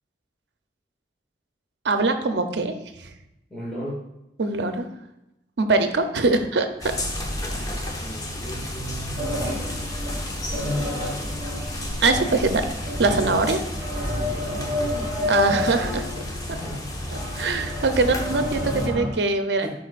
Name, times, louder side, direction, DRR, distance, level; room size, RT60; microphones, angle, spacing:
voice 1, 1.8-2.8 3.0-3.1 4.4-4.9 5.6-6.9 7.5-7.7 12.0-12.6 13.0-13.6 15.2-16.1 17.3-19.7, right 3 dB, 70° right, 7 dB, 0.6 m, -22 dB
voice 2, 3.5-4.0 7.2-9.6 10.5-11.3 13.1-13.3 14.1-14.8 16.3-16.8 19.6-19.7, left 1 dB, ahead, -9 dB, 1.5 m, -36 dB
sound 1, 6.8-18.9, left 1 dB, 20° left, 0.7 m, -32 dB
sound 2, 9.2-19.1, left 1 dB, 30° right, 1.6 m, -30 dB
10.5 x 4.1 x 2.5 m, 0.89 s
head